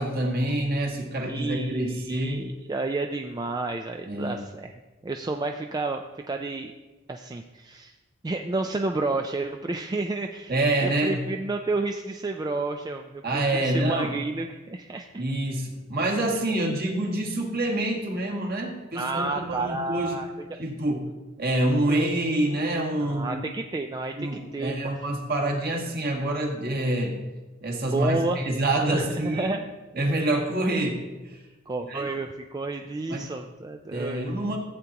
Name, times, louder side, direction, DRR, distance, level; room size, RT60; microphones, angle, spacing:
voice 1, 0.0-2.5 4.0-4.5 10.5-11.2 13.2-14.1 15.2-20.2 20.6-21.1 21.4-23.4 24.2-27.2 27.6-29.5 29.9-31.4 31.9-32.1 33.1-33.3 33.9-34.6, right 1 dB, 50° right, 0 dB, 1.6 m, -27 dB
voice 2, 1.2-4.7 5.0-6.7 7.1-7.9 8.2-15.2 18.9-20.6 21.9-22.0 23.0-24.7 27.9-28.4 28.9-29.6 31.7-34.2, right 3 dB, 20° right, 4 dB, 0.3 m, -31 dB
14.5 x 8.3 x 2.9 m, 1.2 s
head